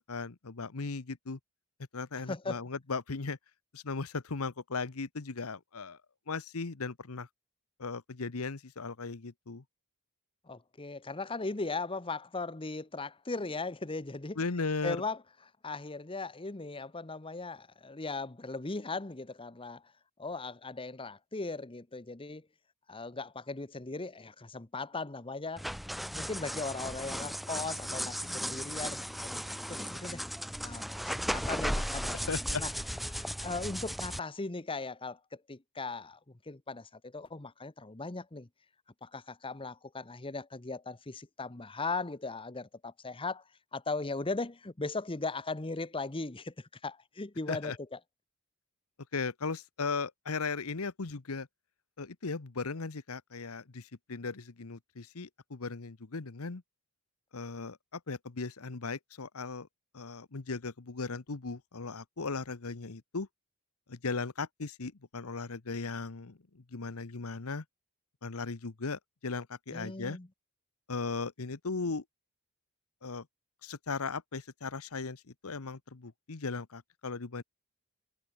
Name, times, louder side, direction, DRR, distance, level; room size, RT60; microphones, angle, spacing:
voice 1, 0.0-1.4 1.9-3.4 3.7-6.0 6.3-7.3 7.8-9.6 14.4-15.0 32.3-32.6 47.5-47.8 49.1-51.5 52.0-56.6 57.3-59.7 59.9-63.3 63.9-67.6 68.2-70.2 70.9-72.0 73.0-73.3 73.6-77.4, left 4 dB, 70° left, 1.0 m, -37 dB
voice 2, 2.3-2.6 10.5-14.4 14.8-15.2 15.6-19.8 20.2-22.5 22.9-25.7 26.0-30.2 30.6-32.3 32.6-32.7 33.2-36.2 36.5-38.5 39.0-43.4 43.7-48.0 69.7-70.3, left 3 dB, 25° left, 1.0 m, -38 dB
sound 1, 25.6-34.2, equal, ahead, 0.6 m, -36 dB
head